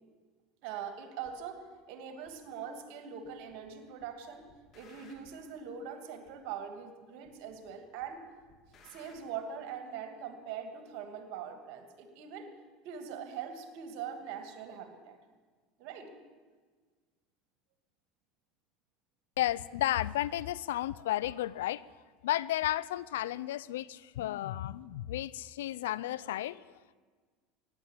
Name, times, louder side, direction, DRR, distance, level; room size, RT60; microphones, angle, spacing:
voice 1, 0.6-1.6 1.9-4.4 4.7-8.2 8.8-12.5 12.8-15.2 15.8-16.1, right 7 dB, 65° right, 6 dB, 2.5 m, -42 dB
sound 1, 1.2-1.4 2.2-2.3 3.2-3.7 4.0-5.5 6.2-6.3 7.2-7.7 8.0-9.2, left 5 dB, 45° left, 2.7 m, -60 dB
voice 2, 19.4-21.9 22.2-27.0, left 14 dB, 80° left, 20 dB, 0.4 m, -33 dB
15.0 x 10.5 x 8.4 m, 1.5 s
hypercardioid pair, 85°, 0 cm